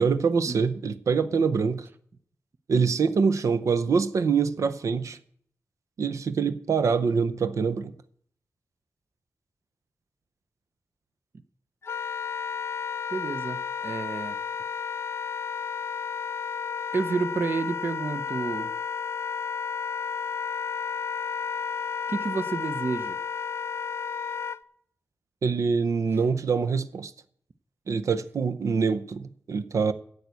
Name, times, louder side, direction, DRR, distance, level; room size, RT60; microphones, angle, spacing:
voice 1, 0.0-1.9 2.7-5.2 6.0-7.9 25.4-27.1 27.9-29.9, right 5 dB, 90° right, 0.6 m, -25 dB
Wind instrument woodwind instrument, 11.8-24.6, left 6 dB, 55° left, 0.4 m, -32 dB
voice 2, 13.1-14.4 16.9-18.7 22.1-23.2, right 4 dB, 45° right, 0.6 m, -30 dB
10.5 x 8.1 x 8.2 m
wide cardioid pair, 150°, 5 cm